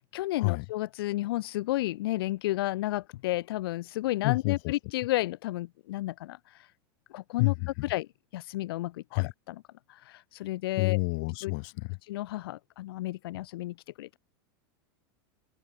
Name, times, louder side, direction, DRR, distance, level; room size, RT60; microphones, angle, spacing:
voice 1, 0.1-6.7 7.1-7.5 7.8-8.1 8.3-9.6 9.9-11.0 11.4-11.5 12.1-14.2, left 17 dB, 80° left, 0.5 m, -32 dB
voice 2, 4.2-4.6 7.4-7.9 9.1-9.3 10.8-12.0, left 36 dB, 55° left, 0.8 m, -28 dB
supercardioid pair, 135°, 12 cm